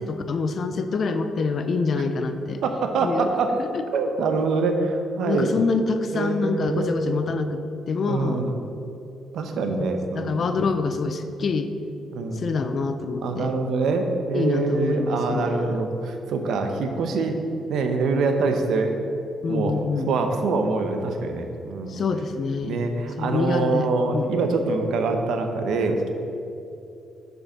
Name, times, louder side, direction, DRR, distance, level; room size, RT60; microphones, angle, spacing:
voice 1, 0.0-2.6 3.0-3.3 3.6-3.8 5.2-8.5 10.1-11.7 12.3-13.5 14.3-15.8 19.4-20.1 21.9-22.8 23.2-23.9 24.1-24.3, left 4 dB, 50° left, 9 dB, 0.6 m, -26 dB
voice 2, 2.6-3.5 3.9-5.5 6.1-7.0 8.1-8.5 9.3-10.5 12.1-12.4 13.2-17.4 17.7-19.0 19.5-19.7 20.1-22.0 22.6-26.1, right 3 dB, 75° right, 5 dB, 0.9 m, -24 dB
7.0 x 5.4 x 6.2 m, 2.7 s
cardioid pair, 90°, 0 cm